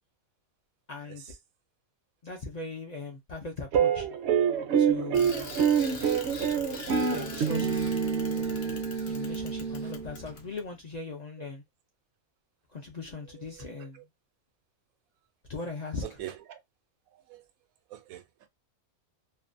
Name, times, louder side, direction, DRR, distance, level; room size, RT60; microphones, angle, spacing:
voice 1, 0.9-1.2 2.2-4.1 4.8-5.5 6.9-7.7 9.1-11.6 12.7-14.0 15.5-16.0, left 3 dB, 75° left, 0.3 m, -39 dB
sound 1, 3.7-10.3, right 7 dB, 65° right, 0.7 m, -27 dB
voice 2, 4.7-5.1 8.3-8.4 13.4-14.0 16.0-16.6 17.3-17.4 17.9-18.2, right 13 dB, 85° right, 1.0 m, -44 dB
Bicycle, 5.1-10.6, left 4 dB, 55° left, 0.8 m, -43 dB
2.6 x 2.1 x 2.5 m
omnidirectional pair, 1.4 m